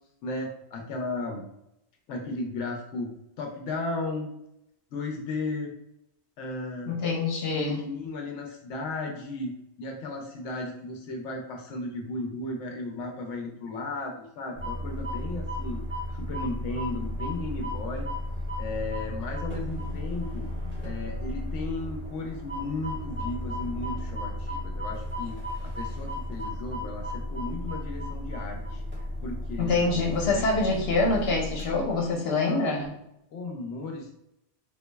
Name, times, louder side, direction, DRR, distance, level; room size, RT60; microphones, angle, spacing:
voice 1, 0.2-1.4 2.1-3.1 3.4-4.3 4.9-5.7 6.4-7.0 7.5-15.8 16.1-18.1 18.6-20.5 20.8-28.8 29.2-29.9 30.3-30.5 32.4-32.7 33.3-34.1, left 2 dB, 85° left, 2 dB, 0.9 m, -35 dB
voice 2, 6.9-7.8 29.6-32.9, left 3 dB, 60° left, 0 dB, 1.1 m, -25 dB
sound 1, 14.5-32.0, left 1 dB, 10° right, 1.1 m, -34 dB
3.8 x 3.0 x 2.2 m, 0.81 s
omnidirectional pair, 1.2 m